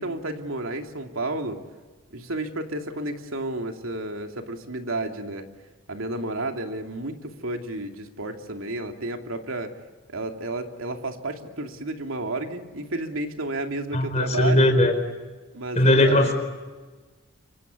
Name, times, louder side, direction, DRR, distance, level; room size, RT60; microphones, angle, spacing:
voice 1, 0.0-1.6 2.1-5.4 5.9-9.7 10.1-14.8 15.5-16.3, right 2 dB, 90° right, 4 dB, 2.8 m, -31 dB
voice 2, 13.9-14.9 15.7-16.3, left 1 dB, 35° left, 7 dB, 4.6 m, -19 dB
27.5 x 24.5 x 8.4 m, 1.3 s
head